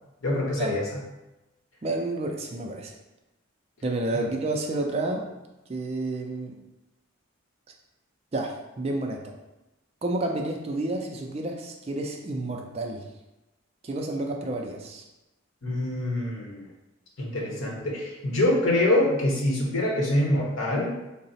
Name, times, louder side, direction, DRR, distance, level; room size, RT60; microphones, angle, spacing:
voice 1, 0.2-0.9 4.1-4.3 15.6-16.6 17.2-20.9, left 1 dB, 75° left, -2 dB, 0.9 m, -25 dB
voice 2, 1.8-2.9 3.8-5.2 5.7-6.6 8.3-9.2 10.0-13.0 13.8-15.0, right 2 dB, 30° right, 2 dB, 0.3 m, -30 dB
3.9 x 2.0 x 4.0 m, 1.0 s
head